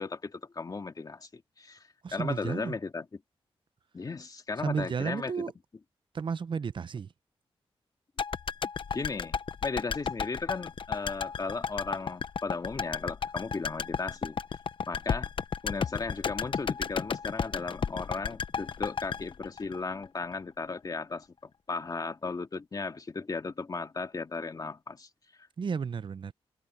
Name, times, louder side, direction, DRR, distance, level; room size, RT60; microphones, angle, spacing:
voice 1, 0.0-1.8 2.1-3.1 3.9-5.4 8.9-14.4 14.9-15.3 15.6-25.1, left 4 dB, 40° left, 2.0 m, -36 dB
voice 2, 2.0-2.8 4.6-5.5 6.1-7.1 25.6-26.3, right 6 dB, 55° right, 0.7 m, -33 dB
sound 1, 8.2-20.4 20.6-20.7, left 6 dB, 60° left, 0.8 m, -33 dB
wide cardioid pair, 95°, 10 cm